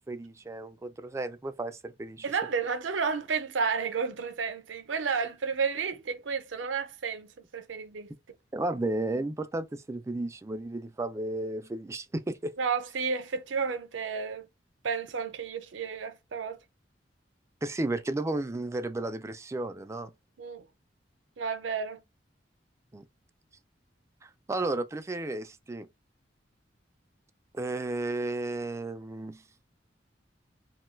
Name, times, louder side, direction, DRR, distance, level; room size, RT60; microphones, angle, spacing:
voice 1, 0.1-2.3 8.5-12.5 17.6-20.1 22.9-23.0 24.2-25.9 27.5-29.4, right 2 dB, 15° right, 0.3 m, -33 dB
voice 2, 2.2-8.1 12.6-14.5 14.8-16.6 20.4-20.6 21.4-22.0, right 5 dB, 90° right, 0.6 m, -31 dB
2.9 x 2.2 x 3.1 m
head